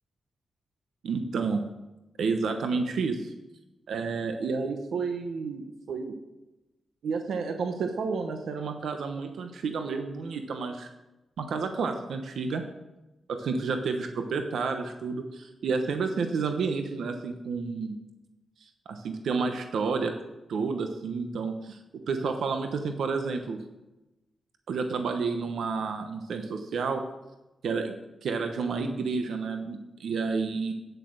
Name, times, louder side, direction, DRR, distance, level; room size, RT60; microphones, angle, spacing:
voice 1, 1.0-1.6 2.2-3.3 3.9-6.2 7.0-10.9 11.4-12.6 13.3-18.0 18.9-20.1 20.5-21.8 22.1-23.6 24.7-27.0 27.6-27.9 28.2-30.7, right 4 dB, 85° right, 6 dB, 0.9 m, -30 dB
9.2 x 7.9 x 6.4 m, 1.0 s
wide cardioid pair, 155°, 0 cm